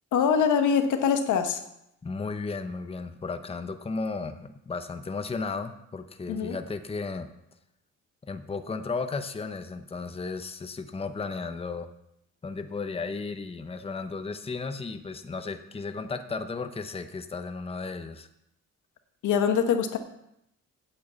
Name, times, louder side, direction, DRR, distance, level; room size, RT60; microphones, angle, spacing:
voice 1, 0.1-1.6 6.3-6.6 19.2-20.0, left 7 dB, 80° left, 7 dB, 1.3 m, -23 dB
voice 2, 2.0-7.3 8.2-11.9 12.4-18.3, left 4 dB, 20° left, 8 dB, 0.8 m, -34 dB
8.7 x 6.6 x 8.1 m, 0.81 s
cardioid pair, 90°, 30 cm